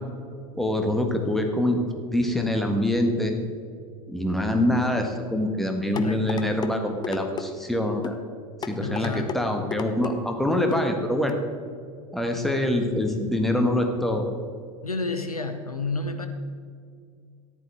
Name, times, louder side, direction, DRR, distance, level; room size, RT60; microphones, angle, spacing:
voice 1, 0.5-1.8 2.1-3.3 4.1-8.1 8.6-11.3 12.1-14.3, left 1 dB, ahead, 3 dB, 1.4 m, -25 dB
voice 2, 5.9-6.3 8.8-9.4 14.8-16.3, left 3 dB, 85° left, 7 dB, 0.9 m, -30 dB
sound 1, 6.0-6.7 7.0-7.5 8.0-8.2 8.6-9.4 9.7-10.1 10.7-10.9 11.3-11.4, left 6 dB, 20° left, 0.7 m, -33 dB
13.5 x 10.5 x 3.4 m, 2.2 s
figure-of-eight pair, 80°, 18 cm